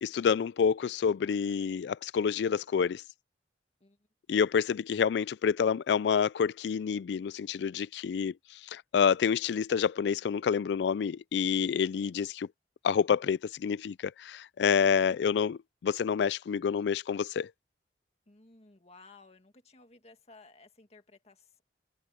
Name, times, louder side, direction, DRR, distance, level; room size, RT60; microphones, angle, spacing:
voice 1, 0.0-3.0 4.3-8.3 8.7-12.5 12.8-17.5, left 7 dB, 70° left, 0.3 m, -28 dB
voice 2, 18.3-21.6, left 3 dB, 35° left, 2.0 m, -56 dB
head